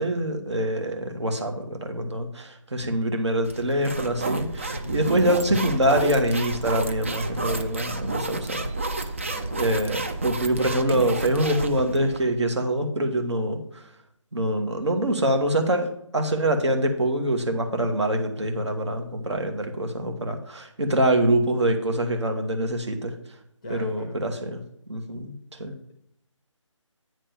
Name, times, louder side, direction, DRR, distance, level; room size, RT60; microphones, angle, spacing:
voice 1, 0.0-9.1 9.5-13.8 14.3-23.1 23.7-24.6 24.9-25.3 25.6-25.7, right 1 dB, 60° right, 4 dB, 1.5 m, -25 dB
sound 1, 3.5-12.2, right 2 dB, 25° right, 0.4 m, -30 dB
voice 2, 4.7-5.1 9.2-9.7 23.6-24.2, left 1 dB, 15° left, 2 dB, 0.7 m, -40 dB
9.2 x 3.3 x 6.8 m, 0.74 s
figure-of-eight pair, 155°, 17 cm